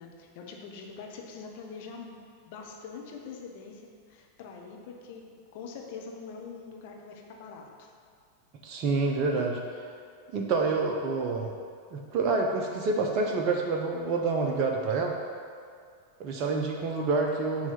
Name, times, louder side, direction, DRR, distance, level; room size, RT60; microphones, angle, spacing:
voice 1, 0.0-2.2 2.5-5.2 5.5-7.9, left 5 dB, 50° left, 1 dB, 0.9 m, -44 dB
voice 2, 8.6-9.6 10.3-11.5 11.9-15.1 16.2-17.7, right 3 dB, 40° right, 1 dB, 0.6 m, -27 dB
7.1 x 3.2 x 5.7 m, 2.2 s
figure-of-eight pair, 90°, 0 cm